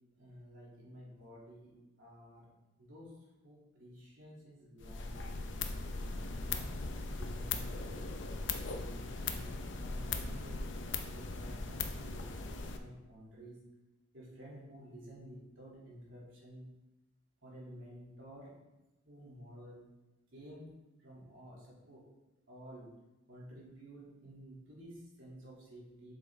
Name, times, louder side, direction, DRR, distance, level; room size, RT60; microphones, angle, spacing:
voice 1, 0.1-2.5 2.8-3.2 3.4-5.4 6.0-6.8 7.1-8.0 8.6-10.7 11.1-13.6 14.1-16.7 17.4-18.5 19.0-19.8 20.3-20.7 21.0-22.0 22.5-23.0 23.3-26.1, equal, 80° right, -6 dB, 2.7 m, -52 dB
sound 1, 4.8-12.8, left 3 dB, 70° left, 0.6 m, -39 dB
7.8 x 5.4 x 3.6 m, 1.0 s
head